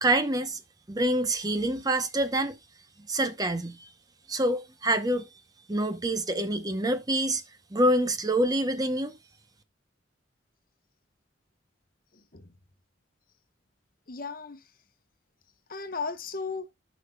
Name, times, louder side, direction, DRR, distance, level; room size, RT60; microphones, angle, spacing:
voice 1, 0.0-0.6 0.9-2.5 3.1-3.9 4.3-5.2 5.7-7.4 7.7-9.1, right 1 dB, 20° right, 0.7 m, -26 dB
voice 2, 12.1-12.5 14.1-14.7 15.7-16.7, left 4 dB, 50° left, 1.0 m, -36 dB
15.5 x 5.2 x 2.2 m
head